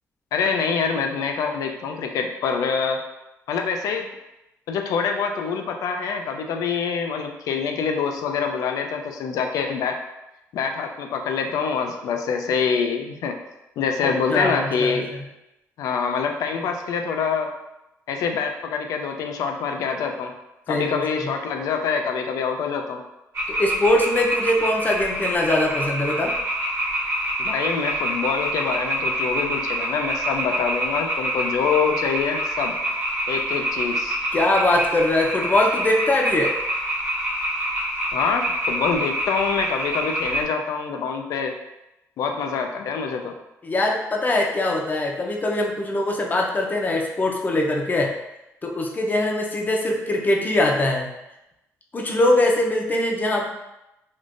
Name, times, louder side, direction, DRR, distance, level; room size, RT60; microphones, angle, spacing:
voice 1, 0.3-3.0 3.5-4.1 4.7-10.0 10.5-13.4 13.8-15.1 15.8-17.5 18.1-20.3 20.7-23.0 27.4-32.8 33.3-34.2 38.1-41.5 42.2-43.3, left 6 dB, 75° left, 4 dB, 0.4 m, -25 dB
voice 2, 14.0-15.0 20.7-21.3 23.6-26.3 34.3-36.5 43.6-48.1 48.6-51.1 51.9-53.5, left 1 dB, 30° left, 0 dB, 0.6 m, -22 dB
sound 1, 23.3-40.4, right 1 dB, 45° right, 1.1 m, -26 dB
3.5 x 2.5 x 2.5 m, 0.92 s
cardioid pair, 85°, 6 cm